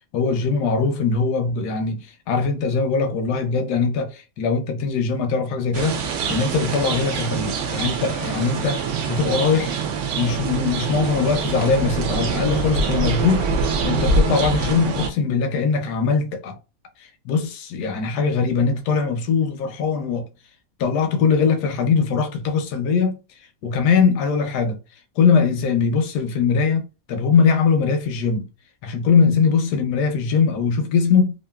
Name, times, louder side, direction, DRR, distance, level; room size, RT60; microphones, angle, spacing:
voice 1, 0.1-6.0 6.3-9.8 10.1-16.6 17.0-20.3 20.8-23.2 23.6-24.8 25.2-28.5 28.8-31.3, left 5 dB, 85° left, 1.2 m, -21 dB
sound 1, 5.7-15.1, right 4 dB, 65° right, 0.7 m, -24 dB
2.9 x 2.4 x 2.2 m
omnidirectional pair, 1.7 m